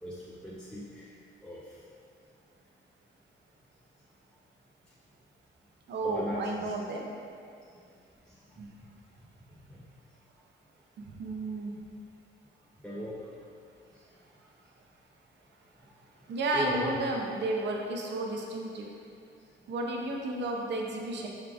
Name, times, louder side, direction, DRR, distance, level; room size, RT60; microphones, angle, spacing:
voice 1, 0.0-1.8 6.0-6.7 7.7-7.8 8.3-8.4 9.7-9.9 12.8-13.4 16.5-17.2, equal, 5° left, -6 dB, 0.4 m, -39 dB
voice 2, 5.9-7.1 8.6-8.7 11.2-11.7 16.3-18.8 19.7-21.3, right 2 dB, 65° right, 0 dB, 0.6 m, -32 dB
4.7 x 3.7 x 2.3 m, 2.4 s
cardioid pair, 90°, 20 cm